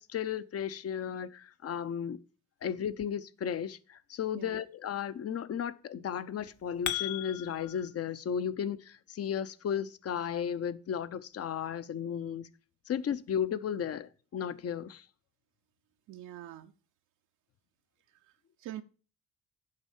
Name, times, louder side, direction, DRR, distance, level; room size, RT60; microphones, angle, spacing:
voice 1, 0.0-2.2 2.6-12.5 12.8-15.1, left 8 dB, 50° left, 0.8 m, -34 dB
sound 1, 6.4-7.9, left 11 dB, 70° left, 1.1 m, -36 dB
voice 2, 16.1-16.7 18.1-18.8, right 13 dB, 80° right, 0.7 m, -45 dB
7.9 x 5.4 x 7.3 m
cardioid pair, 90°, 30 cm